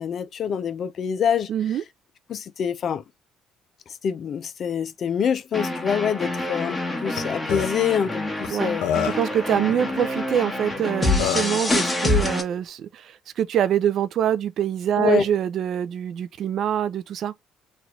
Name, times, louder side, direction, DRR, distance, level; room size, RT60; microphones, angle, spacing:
voice 1, 0.0-1.5 2.3-3.0 4.0-8.9 15.0-15.3, left 7 dB, 55° left, 0.5 m, -25 dB
voice 2, 1.5-1.8 8.5-8.8 9.0-17.3, right 9 dB, 60° right, 0.3 m, -24 dB
sound 1, 5.5-12.4, left 2 dB, 15° left, 1.3 m, -26 dB
Burping eructation, 7.2-7.3 7.5-7.7 8.4-8.5 8.8-9.3 10.7-10.8 11.2-11.6, left 9 dB, 85° left, 0.8 m, -25 dB
3.2 x 2.4 x 3.0 m
supercardioid pair, 80°, 0 cm